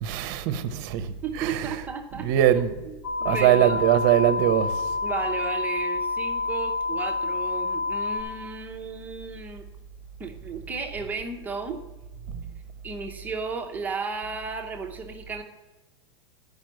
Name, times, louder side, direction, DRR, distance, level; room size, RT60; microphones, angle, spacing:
voice 1, 0.0-1.1 1.4-1.7 2.2-2.7 3.2-4.9 12.3-12.4, right 11 dB, 45° right, 0.8 m, -22 dB
voice 2, 1.2-2.5 2.9-3.0 3.2-3.8 5.0-9.6 10.2-11.8 12.8-15.4, right 5 dB, 10° right, 0.7 m, -34 dB
sound 1, 3.0-8.2, left 4 dB, 65° left, 1.7 m, -28 dB
10.5 x 5.3 x 7.5 m
supercardioid pair, 160°, 13 cm